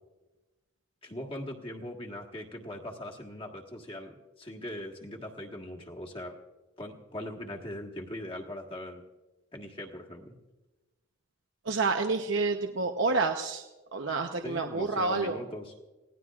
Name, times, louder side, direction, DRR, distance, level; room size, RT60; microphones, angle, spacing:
voice 1, 1.0-6.4 6.8-9.0 9.5-10.4 14.4-15.7, left 1 dB, 25° left, 0 dB, 1.6 m, -40 dB
voice 2, 11.7-13.6 13.9-15.4, right 3 dB, 75° right, 4 dB, 0.9 m, -28 dB
28.0 x 17.5 x 2.4 m, 1.1 s
head